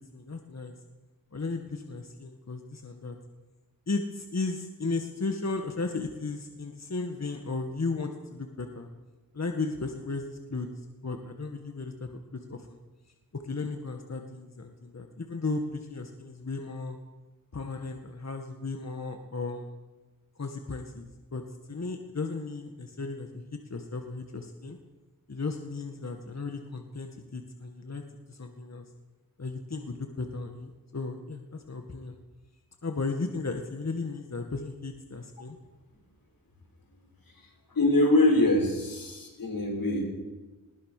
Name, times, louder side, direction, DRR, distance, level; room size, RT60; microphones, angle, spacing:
voice 1, 0.1-0.7 1.3-3.2 3.9-8.9 9.3-12.8 13.3-17.0 17.5-19.7 20.4-21.4 21.7-24.8 25.3-28.9 29.4-32.2 32.8-35.6, left 3 dB, 50° left, 5 dB, 1.9 m, -35 dB
voice 2, 37.7-40.1, left 1 dB, 85° left, 1 dB, 6.2 m, -24 dB
21.0 x 19.0 x 6.7 m, 1.2 s
wide cardioid pair, 60°, 34 cm